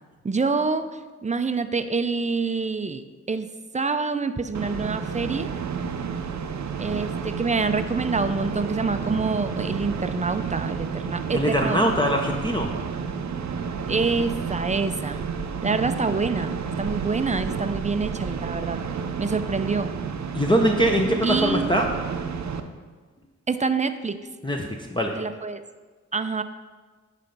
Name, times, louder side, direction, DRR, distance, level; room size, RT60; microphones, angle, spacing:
voice 1, 0.2-0.9 1.2-3.5 3.7-5.5 6.8-11.8 13.9-15.2 15.6-18.8 19.2-19.9 21.2-21.7 23.5-24.2 25.2-25.6 26.1-26.4, right 4 dB, 25° right, 10 dB, 0.5 m, -26 dB
sound 1, 4.5-22.6, right 6 dB, 65° right, 0.7 m, -31 dB
voice 2, 11.3-12.7 20.3-21.9 24.4-25.2, equal, 15° left, 1 dB, 0.8 m, -22 dB
9.9 x 3.3 x 5.3 m, 1.4 s
cardioid pair, 50°, 30 cm